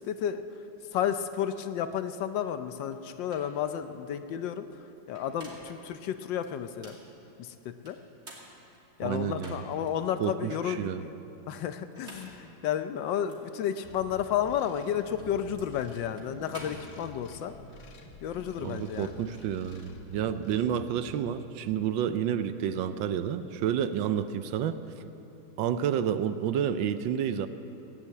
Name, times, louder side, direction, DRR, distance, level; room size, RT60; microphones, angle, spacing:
voice 1, 0.1-0.4 0.9-4.7 5.1-7.0 7.4-8.0 9.0-11.2 11.5-17.5 18.2-19.2, left 9 dB, 75° left, 10 dB, 1.3 m, -32 dB
sound 1, 2.9-3.0 3.3-3.6 5.0-5.8 6.4-7.1 7.8-9.9 10.4-10.5 11.8-12.5 13.3-13.4 14.6-17.4, right 1 dB, 35° right, 3.0 m, -49 dB
voice 2, 9.0-9.6 10.2-11.0 18.6-24.8 25.6-27.5, right 9 dB, 75° right, 11 dB, 1.3 m, -30 dB
sound 2, 13.8-21.2, left 2 dB, 45° left, 1.6 m, -49 dB
17.0 x 9.8 x 8.3 m, 2.8 s
omnidirectional pair, 2.2 m